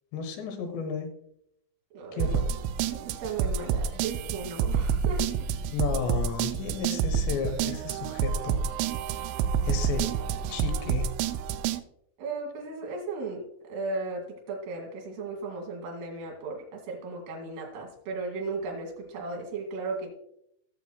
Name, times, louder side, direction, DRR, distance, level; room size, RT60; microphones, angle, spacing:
voice 1, 0.1-1.1 2.1-2.4 5.7-8.6 9.6-10.1 10.5-11.1, left 6 dB, 75° left, 5 dB, 3.1 m, -33 dB
voice 2, 1.9-2.3 2.9-5.2 12.2-20.1, right 3 dB, 65° right, -1 dB, 4.0 m, -36 dB
sound 1, 2.2-11.8, right 7 dB, 85° right, 2.9 m, -28 dB
17.0 x 6.7 x 2.2 m, 0.73 s
omnidirectional pair, 5.4 m